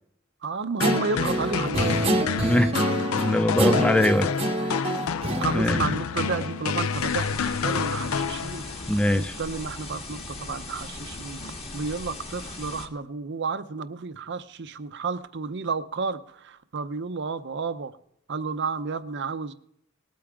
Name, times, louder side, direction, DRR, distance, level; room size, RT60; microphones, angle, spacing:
voice 1, 0.4-2.3 5.4-8.6 9.1-17.9 18.3-19.5, right 5 dB, 55° right, 11 dB, 0.7 m, -32 dB
sound 1, 0.8-8.9, left 6 dB, 80° left, 0.5 m, -29 dB
Guitar, 0.8-6.6, right 1 dB, 30° right, 0.9 m, -27 dB
voice 2, 2.4-2.7 3.2-4.3 4.7-4.9 5.5-5.8 8.9-9.3, left 1 dB, 5° left, 9 dB, 0.3 m, -22 dB
sound 2, 6.9-12.9, left 2 dB, 30° left, 1.6 m, -38 dB
19.5 x 8.6 x 3.5 m, 0.72 s
head